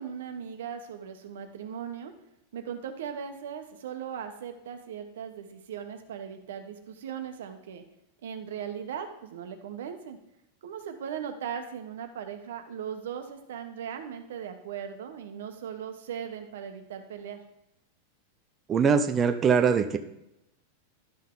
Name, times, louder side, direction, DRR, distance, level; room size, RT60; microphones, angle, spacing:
voice 1, 0.0-2.1 2.5-7.8 8.2-10.2 10.6-17.4, right 8 dB, 80° right, 6 dB, 1.2 m, -38 dB
voice 2, 18.7-20.0, right 6 dB, 15° right, 8 dB, 0.4 m, -22 dB
12.0 x 5.5 x 3.9 m, 0.84 s
supercardioid pair, 175°, 0 cm